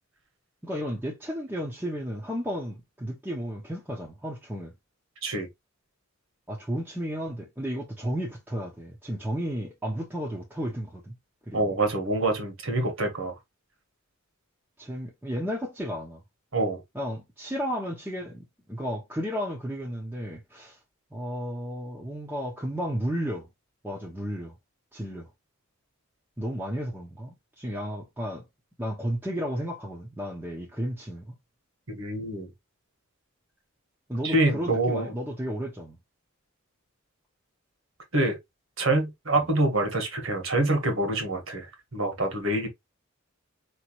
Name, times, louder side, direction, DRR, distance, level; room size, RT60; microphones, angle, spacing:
voice 1, 0.6-4.7 6.5-11.1 11.5-11.7 14.8-16.2 16.9-20.8 21.1-23.5 23.8-24.5 24.9-25.3 26.4-28.4 28.8-31.3 34.1-36.0 39.3-39.5, equal, 10° right, 0.9 m, -33 dB
voice 2, 11.5-13.3 16.5-16.8 31.9-32.5 34.2-35.1 38.1-38.4 38.8-41.7 41.9-42.7, right 2 dB, 65° right, 1.6 m, -26 dB
4.8 x 3.1 x 3.1 m
head